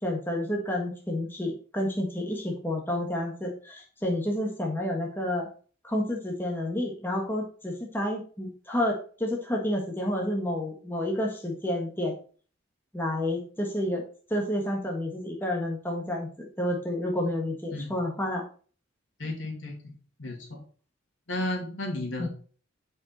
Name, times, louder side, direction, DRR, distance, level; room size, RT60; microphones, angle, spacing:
voice 1, 0.0-5.5 5.8-12.1 12.9-14.0 14.3-18.4 22.2-22.3, left 1 dB, 10° left, -1 dB, 1.5 m, -30 dB
voice 2, 19.2-20.6 21.3-22.3, left 1 dB, 80° left, 1 dB, 2.5 m, -33 dB
7.6 x 5.3 x 4.2 m, 0.41 s
head